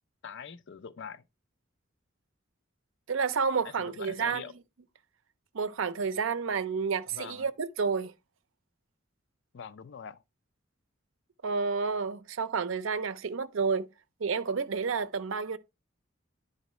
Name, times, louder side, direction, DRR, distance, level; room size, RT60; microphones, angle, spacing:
voice 1, 0.2-1.2 3.6-4.5 7.1-7.5 9.5-10.2, left 6 dB, 60° left, 0.5 m, -43 dB
voice 2, 3.1-4.5 5.5-8.1 11.4-13.9 14.2-15.6, right 5 dB, 70° right, 0.5 m, -30 dB
10.5 x 4.0 x 3.1 m
head